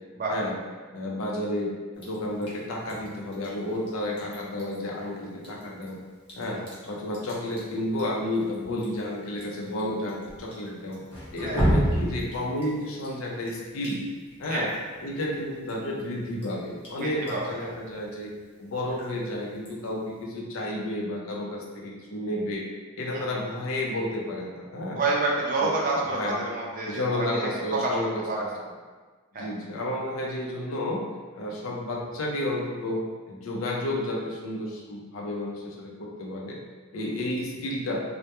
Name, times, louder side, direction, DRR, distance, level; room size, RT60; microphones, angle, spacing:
voice 1, 0.9-6.0 6.3-11.0 11.3-14.0 14.4-14.7 15.0-18.3 18.6-22.6 23.0-25.0 25.6-26.4 26.9-28.2 29.3-31.0 31.3-33.0 33.3-36.6 36.9-38.0, left 1 dB, 85° left, -2 dB, 0.5 m, -31 dB
Drip, 2.0-20.2, equal, 25° left, 0.5 m, -35 dB
voice 2, 11.4-11.8 14.5-14.7 17.0-17.8 23.1-23.2 24.9-27.4 27.7-28.0 28.3-28.4 29.3-29.5, right 3 dB, 40° right, -3 dB, 0.4 m, -28 dB
2.1 x 2.1 x 2.8 m, 1.4 s
head